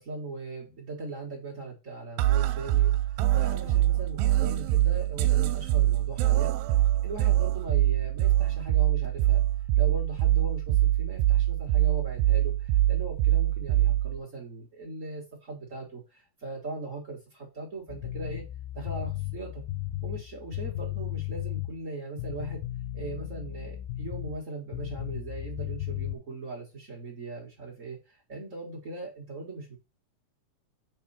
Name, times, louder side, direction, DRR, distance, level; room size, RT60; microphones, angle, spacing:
voice 1, 0.0-2.9 3.3-6.5 7.0-9.4 9.8-18.4 18.7-19.6 20.0-22.6 22.9-29.8, right 2 dB, 60° right, -3 dB, 0.8 m, -39 dB
sound 1, 2.2-14.2, right 13 dB, 80° right, 2.3 m, -24 dB
sound 2, 17.9-21.8 22.2-24.4 24.7-26.2, left 14 dB, 85° left, 2.4 m, -35 dB
6.6 x 3.7 x 4.1 m, 0.28 s
omnidirectional pair, 4.1 m